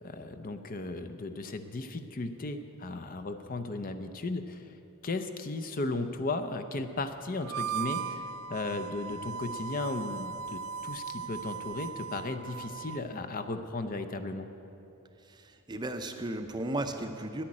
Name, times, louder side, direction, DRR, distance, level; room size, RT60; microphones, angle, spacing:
voice 1, 0.0-4.6 5.0-8.2 8.5-14.5, left 2 dB, 40° left, 8 dB, 0.6 m, -35 dB
Harmonica, 7.4-13.1, right 6 dB, 90° right, 0.6 m, -38 dB
voice 2, 15.3-17.4, right 1 dB, 20° right, 6 dB, 0.6 m, -35 dB
10.0 x 10.0 x 8.6 m, 2.9 s
head